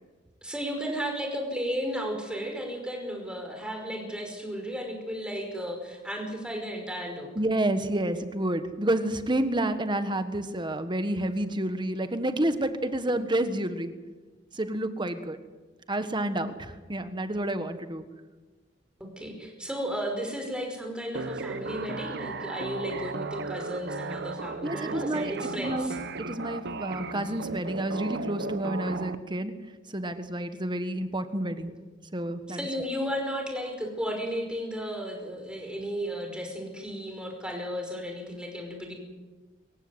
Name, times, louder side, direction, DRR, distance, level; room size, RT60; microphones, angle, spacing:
voice 1, 0.4-7.3 19.0-26.0 32.5-38.9, equal, 5° right, 2 dB, 5.3 m, -34 dB
voice 2, 7.3-13.9 14.5-15.4 15.9-18.0 24.6-25.9 26.2-29.5 29.9-31.7 32.1-32.7, right 1 dB, 25° right, 9 dB, 1.4 m, -29 dB
sound 1, 21.1-29.1, right 3 dB, 60° right, 1.1 m, -35 dB
25.0 x 15.0 x 9.8 m, 1.3 s
head